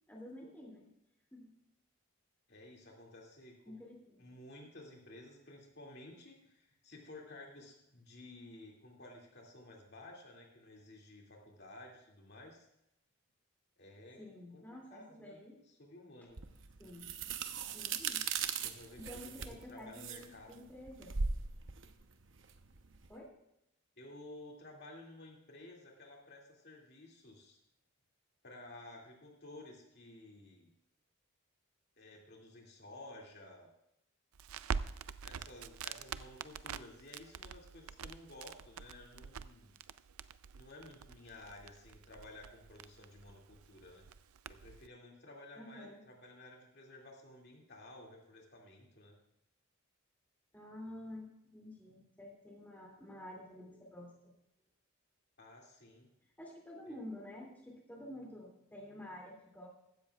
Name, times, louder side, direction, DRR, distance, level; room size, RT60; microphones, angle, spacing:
voice 1, 0.1-0.9 1.3-1.5 3.7-4.2 14.2-15.6 16.2-16.3 16.8-17.1 17.7-18.3 19.0-21.1 23.1-23.3 45.6-46.0 50.5-54.3 56.4-59.7, left 1 dB, 10° left, -1 dB, 2.5 m, -50 dB
voice 2, 2.5-3.8 4.2-12.7 13.8-14.3 14.5-14.6 14.9-15.4 15.7-16.4 18.6-20.6 24.0-27.6 28.4-30.7 32.0-33.7 35.2-39.7 40.6-44.1 44.5-49.1 55.4-56.1 56.9-57.0, left 2 dB, 50° left, -1 dB, 2.3 m, -54 dB
sound 1, 16.4-23.1, right 5 dB, 60° right, 0.8 m, -39 dB
Crackle, 34.3-44.9, right 6 dB, 90° right, 0.5 m, -45 dB
16.0 x 13.0 x 2.4 m, 0.83 s
head